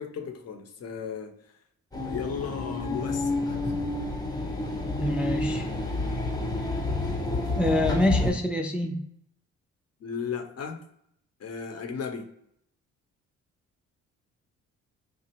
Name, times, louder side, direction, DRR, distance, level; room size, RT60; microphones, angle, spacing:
voice 1, 0.0-1.3 2.0-3.8 4.4-4.5 10.0-10.8 11.4-12.3, left 6 dB, 55° left, 5 dB, 0.8 m, -35 dB
sound 1, 1.9-8.3, left 2 dB, 15° left, 0.9 m, -29 dB
voice 2, 5.0-5.7 7.5-9.0, left 1 dB, 5° right, 2 dB, 0.3 m, -26 dB
3.1 x 2.4 x 2.9 m, 0.70 s
cardioid pair, 90°, 30 cm